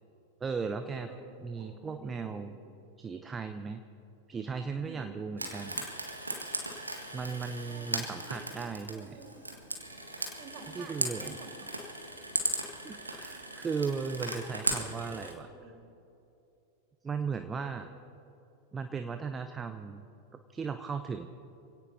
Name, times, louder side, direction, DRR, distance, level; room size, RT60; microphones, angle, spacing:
voice 1, 0.4-1.1 1.4-2.6 3.0-3.8 4.3-5.8 7.1-9.2 10.7-11.4 12.8-15.5 17.0-17.9 18.7-20.1 20.5-21.3, right 5 dB, 20° right, 8 dB, 0.7 m, -36 dB
voice 2, 1.1-2.7 4.8-5.1 7.3-9.5 10.4-11.9 14.2-16.0 17.6-17.9, right 3 dB, 35° right, 1 dB, 4.2 m, -51 dB
Frying (food), 5.4-15.3, right 2 dB, 80° right, 1.8 m, -37 dB
26.0 x 17.0 x 2.8 m, 2.8 s
figure-of-eight pair, 90°, 0 cm